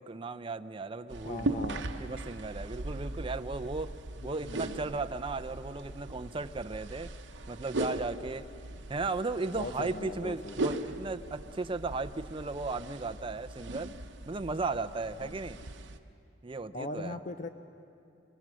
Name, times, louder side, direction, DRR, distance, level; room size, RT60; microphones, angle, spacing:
voice 1, 0.0-1.7 2.0-4.0 4.2-7.1 7.5-8.4 8.9-14.0 14.3-15.6 16.4-17.2, right 3 dB, 30° right, 10 dB, 0.6 m, -36 dB
sound 1, 1.1-16.0, right 2 dB, 75° right, 0.9 m, -39 dB
voice 2, 1.2-1.9 4.2-4.7 9.5-10.8 15.2-15.3 16.7-17.5, left 2 dB, 45° left, 8 dB, 0.7 m, -40 dB
27.5 x 22.5 x 6.3 m, 2.5 s
head